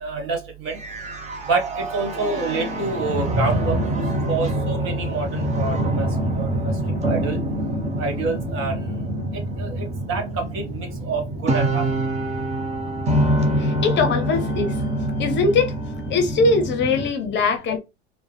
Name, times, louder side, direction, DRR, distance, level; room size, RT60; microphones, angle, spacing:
voice 1, 0.0-0.8 1.5-3.7 4.3-6.1 6.3-6.7 7.1-7.4 8.0-8.9 9.6-11.9, right 3 dB, 40° right, 1.6 m, -27 dB
sound 1, 0.7-17.1, right 1 dB, 20° right, 1.0 m, -25 dB
voice 2, 13.6-14.7 15.2-15.7 16.1-17.8, left 3 dB, 35° left, 0.8 m, -21 dB
4.7 x 2.2 x 3.3 m
hypercardioid pair, 95°, 32 cm